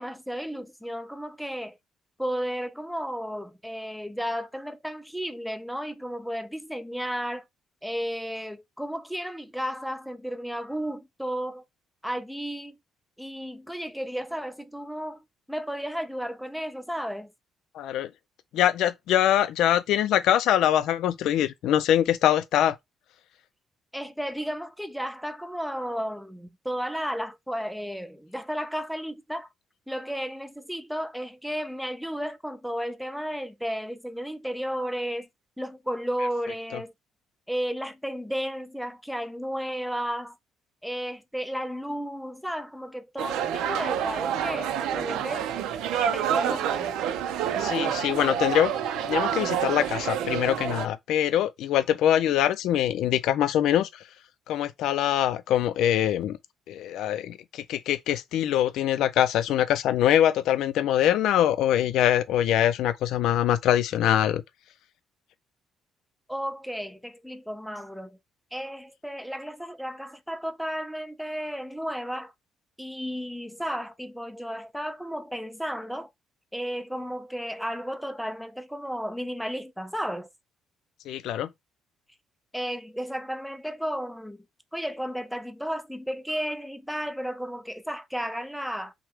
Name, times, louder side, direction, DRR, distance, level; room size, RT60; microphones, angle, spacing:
voice 1, 0.0-1.8 2.2-7.4 7.8-11.6 12.0-12.8 13.2-17.3 23.9-29.5 29.9-35.3 35.6-36.9 37.5-40.4 40.8-45.5 46.1-46.9 66.3-68.2 68.5-72.3 72.8-76.1 76.5-80.3 82.5-84.4 84.7-88.9, equal, ahead, 0.4 m, -33 dB
voice 2, 17.7-18.1 18.5-22.8 36.7-36.8 47.6-48.7 49.0-54.0 54.5-56.4 56.7-64.4 81.1-81.5, left 11 dB, 75° left, 0.5 m, -23 dB
sound 1, 43.2-50.9, right 9 dB, 90° right, 0.6 m, -28 dB
5.8 x 2.2 x 3.4 m
cardioid pair, 155°, 0 cm